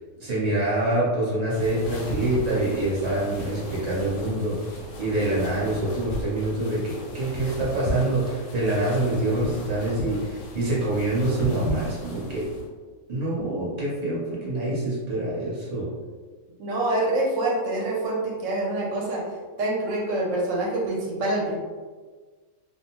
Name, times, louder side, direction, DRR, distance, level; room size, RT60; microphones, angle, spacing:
voice 1, 0.2-12.4 13.1-15.9, right 1 dB, 35° right, -7 dB, 0.8 m, -26 dB
sound 1, 1.5-12.7, right 1 dB, 70° left, 0.8 m, -35 dB
voice 2, 16.6-19.2 19.6-21.5, right 2 dB, 65° right, -3 dB, 0.9 m, -26 dB
2.5 x 2.1 x 2.9 m, 1.4 s
omnidirectional pair, 1.6 m